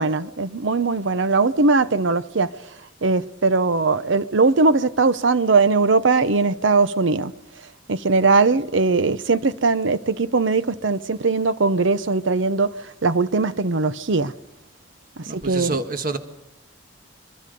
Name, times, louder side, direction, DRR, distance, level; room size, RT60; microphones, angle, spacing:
voice 1, 0.0-2.5 3.0-7.3 7.9-12.7 13.0-14.3 15.3-15.8, right 3 dB, 75° right, 0.8 m, -20 dB
voice 2, 15.3-16.2, right 3 dB, 45° right, 1.6 m, -27 dB
24.0 x 22.0 x 5.3 m
head